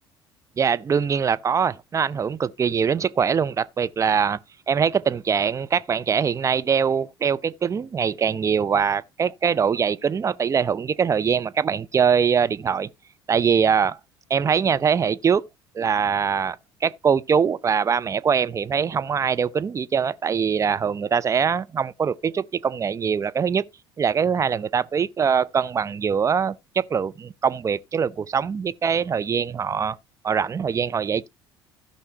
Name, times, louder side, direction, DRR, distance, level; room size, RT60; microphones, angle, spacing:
voice 1, 0.6-4.4 4.7-12.9 13.3-14.0 14.3-15.4 15.7-23.6 24.0-30.0 30.2-31.3, right 6 dB, 25° right, 0.6 m, -23 dB
16.0 x 5.6 x 2.9 m
figure-of-eight pair, 60°, 12 cm